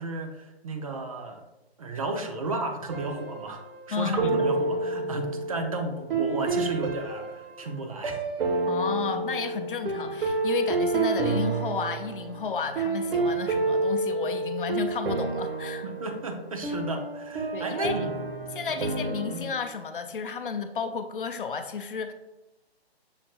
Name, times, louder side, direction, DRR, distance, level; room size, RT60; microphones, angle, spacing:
voice 1, 0.0-1.4 1.8-3.6 3.9-8.2 15.8-18.2 19.3-19.4, right 2 dB, 35° right, 4 dB, 0.4 m, -33 dB
sound 1, 2.9-3.8 4.2-19.5, right 3 dB, 60° right, 0.8 m, -29 dB
voice 2, 3.9-4.5 8.7-15.9 17.5-18.0 18.5-22.1, left 5 dB, 55° left, 8 dB, 0.5 m, -32 dB
6.5 x 2.8 x 2.8 m, 1.0 s
figure-of-eight pair, 135°, 32 cm